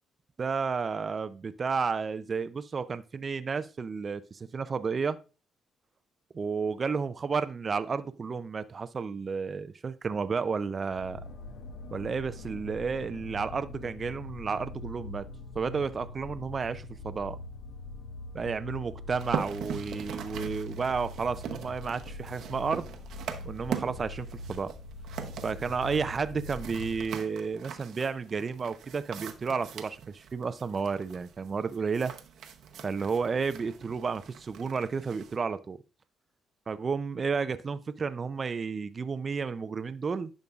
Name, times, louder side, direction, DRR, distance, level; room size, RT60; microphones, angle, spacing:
voice 1, 0.4-5.2 6.3-11.2 11.9-15.2 15.5-17.4 18.3-22.9 23.4-24.7 25.4-32.1 32.8-35.8 36.7-40.3, right 5 dB, 40° right, 12 dB, 0.4 m, -32 dB
sound 1, 10.9-27.2, left 2 dB, 75° left, 0.8 m, -43 dB
sound 2, 19.1-35.4, right 8 dB, 75° right, 0.8 m, -42 dB
10.5 x 5.2 x 2.4 m, 0.33 s
cardioid pair, 90°, 0 cm